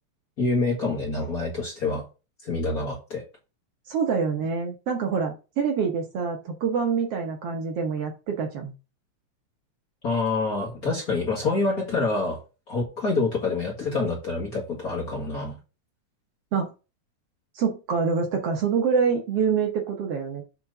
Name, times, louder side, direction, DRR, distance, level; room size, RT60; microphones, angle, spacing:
voice 1, 0.4-2.0 2.4-3.2 10.0-12.4 12.7-15.6, left 3 dB, 40° left, -2 dB, 1.6 m, -26 dB
voice 2, 3.9-8.7 16.5-16.7 17.6-20.4, right 6 dB, 60° right, 3 dB, 1.8 m, -26 dB
7.3 x 3.9 x 5.2 m, 0.31 s
omnidirectional pair, 3.4 m